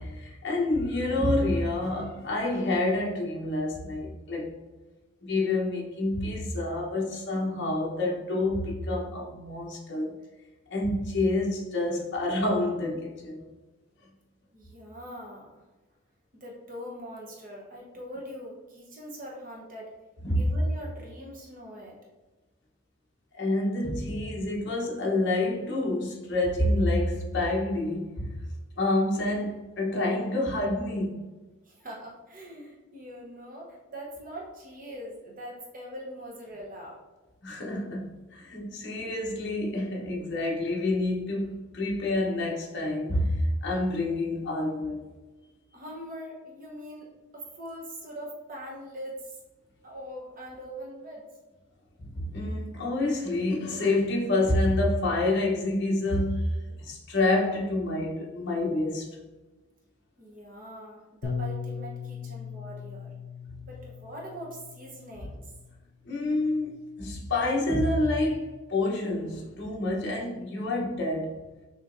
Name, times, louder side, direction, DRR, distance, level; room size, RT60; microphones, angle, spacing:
voice 1, 0.0-4.5 5.2-10.2 10.7-13.4 20.2-20.5 23.3-28.4 28.8-31.2 37.4-45.0 52.0-59.1 66.0-71.4, left 2 dB, 50° left, 0.9 m, -28 dB
sound 1, 1.3-2.4, left 1 dB, 10° right, 1.4 m, -48 dB
voice 2, 14.5-15.6 16.4-19.9 20.3-22.0 31.6-37.0 45.7-49.4 49.8-51.3 60.2-63.1 63.6-65.5, equal, 40° right, 0.8 m, -42 dB
Bass guitar, 61.2-65.7 66.5-67.5, left 6 dB, 70° left, 0.5 m, -39 dB
6.0 x 2.9 x 2.5 m
head